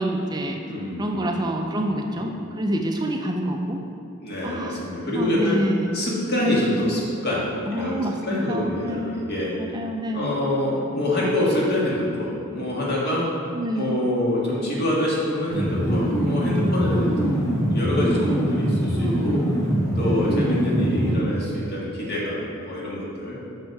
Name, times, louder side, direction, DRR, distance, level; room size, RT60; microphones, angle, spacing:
voice 1, 0.0-0.6 1.0-3.8 4.4-6.0 7.7-9.2 9.6-10.3 13.5-14.0, right 1 dB, 20° right, 2 dB, 0.4 m, -27 dB
voice 2, 0.6-1.4 2.1-2.4 4.2-5.6 5.9-7.4 7.7-9.8 10.1-13.2 13.7-19.4 20.0-23.4, left 1 dB, 50° left, -5 dB, 1.8 m, -26 dB
sound 1, 15.5-21.1, equal, 15° left, 1.7 m, -23 dB
6.5 x 6.2 x 4.6 m, 2.7 s
head